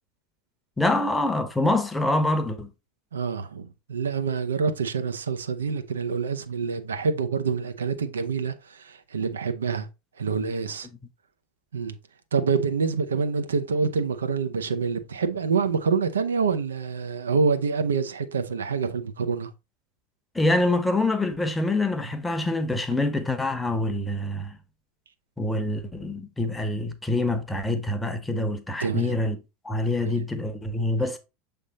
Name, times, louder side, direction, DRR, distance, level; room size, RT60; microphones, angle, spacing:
voice 1, 0.8-2.7 20.3-24.6 25.4-29.4 29.6-31.2, left 2 dB, 10° left, 1.0 m, -25 dB
voice 2, 3.1-9.9 10.2-10.9 11.7-11.9 12.3-19.5 28.8-29.1 30.0-30.2, right 5 dB, 70° right, 0.8 m, -26 dB
7.2 x 3.6 x 4.0 m
figure-of-eight pair, 80°, 0 cm